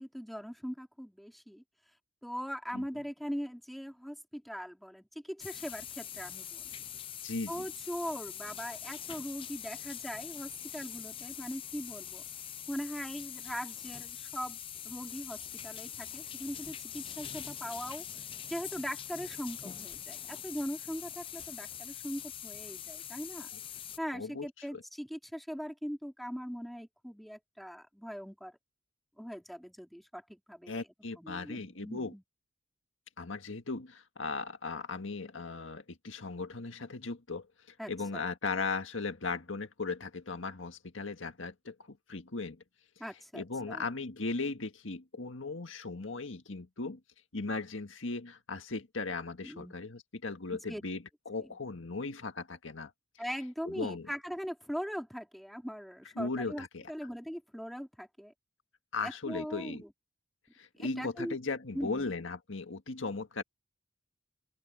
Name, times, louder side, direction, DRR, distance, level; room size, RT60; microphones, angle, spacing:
voice 1, 0.0-1.6 2.2-6.7 7.5-12.2 12.7-14.6 14.8-18.0 18.5-23.5 24.0-28.5 29.2-30.8 31.2-32.2 37.8-38.3 43.0-43.8 49.4-49.8 50.7-50.8 51.4-51.5 53.2-58.3 59.0-59.9 60.8-61.4 61.7-62.1, equal, ahead, 2.4 m, -40 dB
sound 1, 5.4-24.0, left 9 dB, 30° left, 0.5 m, -43 dB
voice 2, 7.2-7.7 24.1-24.8 30.7-32.1 33.2-42.6 43.3-47.0 47.3-52.9 53.6-54.1 56.2-56.9 58.9-59.8 60.6-63.4, left 3 dB, 85° left, 1.7 m, -37 dB
open air
head